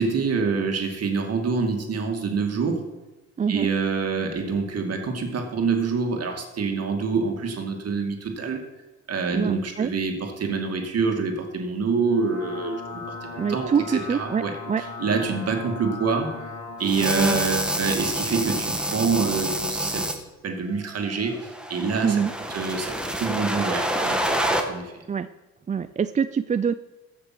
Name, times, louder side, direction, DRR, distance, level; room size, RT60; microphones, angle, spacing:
voice 1, 0.0-2.8 3.5-8.6 9.1-16.3 16.8-20.1 20.4-22.2 22.5-24.3 24.7-25.0, right 4 dB, 55° right, 4 dB, 2.3 m, -26 dB
voice 2, 3.4-3.7 9.3-9.9 13.4-14.8 17.0-17.1 17.3-17.4 22.0-22.3 25.1-25.3 25.7-26.7, right 6 dB, 25° right, 12 dB, 0.4 m, -25 dB
sound 1, 12.0-16.9, left 3 dB, 60° left, 3.4 m, -37 dB
sound 2, 16.8-20.1 21.3-24.6, right 1 dB, 5° right, 1.5 m, -27 dB
15.0 x 5.9 x 6.1 m, 1.1 s
cardioid pair, 90°, 30 cm